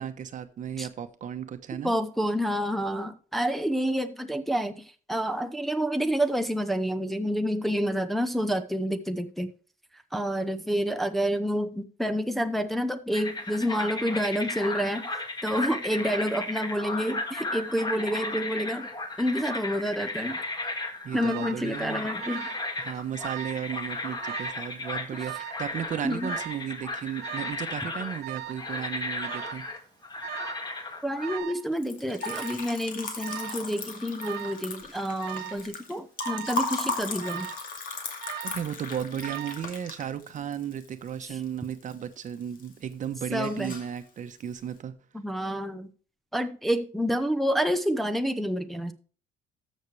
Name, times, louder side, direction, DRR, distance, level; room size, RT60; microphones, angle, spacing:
voice 1, 0.0-1.9 21.0-22.1 22.8-29.6 38.4-44.9, right 9 dB, 50° right, 1.0 m, -35 dB
voice 2, 1.8-9.5 10.1-15.0 15.4-18.9 19.2-20.4 21.1-22.5 25.2-25.4 26.0-26.3 31.0-37.5 41.2-41.4 43.3-43.8 45.1-45.9 46.3-48.9, equal, ahead, 0.7 m, -28 dB
sound 1, 13.1-31.4, left 2 dB, 25° left, 1.8 m, -35 dB
Alarm, 21.2-21.6 22.2-22.7 22.9-23.6 24.2-24.6 25.2-25.6 26.2-26.6 27.2-27.6 28.2-28.6 29.2-29.6 30.2-30.6 31.2-31.6 32.2-32.7 33.2-33.6 34.2-34.6 35.2-35.6 36.2-36.6 37.2-37.7 38.2-38.7 39.2-39.7, right 14 dB, 75° right, 0.8 m, -39 dB
Liquid, 31.7-41.9 42.3-42.9 43.2-44.0, left 3 dB, 55° left, 2.3 m, -36 dB
13.5 x 6.5 x 3.3 m
cardioid pair, 110°, 17 cm